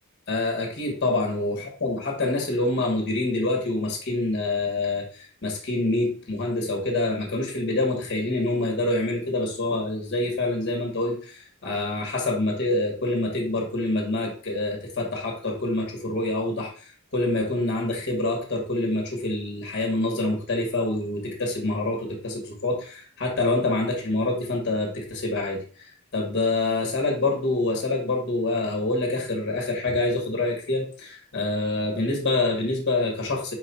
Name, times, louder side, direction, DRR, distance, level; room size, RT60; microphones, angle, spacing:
voice 1, 0.3-25.6 26.1-33.5, left 2 dB, 50° left, 1 dB, 1.0 m, -26 dB
4.6 x 3.9 x 2.2 m, 0.42 s
head